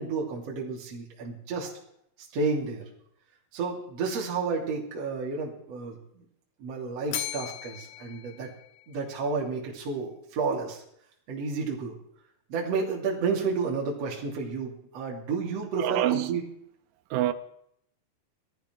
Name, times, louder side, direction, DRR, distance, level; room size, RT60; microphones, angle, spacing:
voice 1, 0.0-1.7 2.3-2.8 3.5-6.2 6.6-8.5 8.9-10.8 11.3-11.9 12.5-16.4, right 4 dB, 40° right, 3.0 m, -31 dB
Bell, 7.1-9.3, left 13 dB, 75° left, 2.8 m, -38 dB
voice 2, 15.8-16.4 17.1-17.3, right 14 dB, 90° right, 3.6 m, -26 dB
17.5 x 13.5 x 4.6 m
omnidirectional pair, 6.0 m